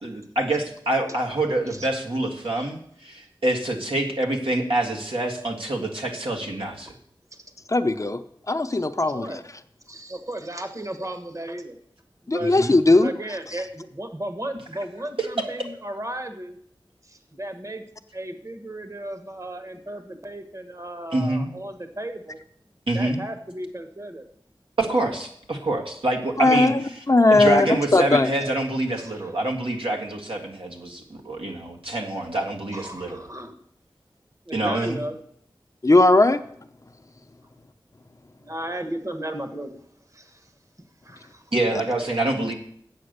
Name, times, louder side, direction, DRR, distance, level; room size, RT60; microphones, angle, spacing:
voice 1, 0.0-6.9 12.4-12.7 15.2-15.3 21.1-21.5 22.9-23.2 24.8-26.7 27.3-33.2 34.5-35.0 41.5-42.5, right 2 dB, 85° right, 0 dB, 1.7 m, -26 dB
voice 2, 7.7-8.2 8.5-9.4 12.3-13.1 26.4-26.8 27.1-28.3 35.8-36.4, left 2 dB, 35° left, 9 dB, 0.6 m, -18 dB
voice 3, 8.7-9.4 9.9-11.8 12.2-12.5 12.9-16.6 17.0-17.9 18.1-22.4 22.9-24.3 29.0-29.3 32.7-33.5 34.5-35.2 38.4-39.7 40.1-40.5 41.0-41.5 42.0-42.2, right 1 dB, 35° right, 7 dB, 1.3 m, -35 dB
8.7 x 7.7 x 6.6 m, 0.66 s
wide cardioid pair, 65°, 9 cm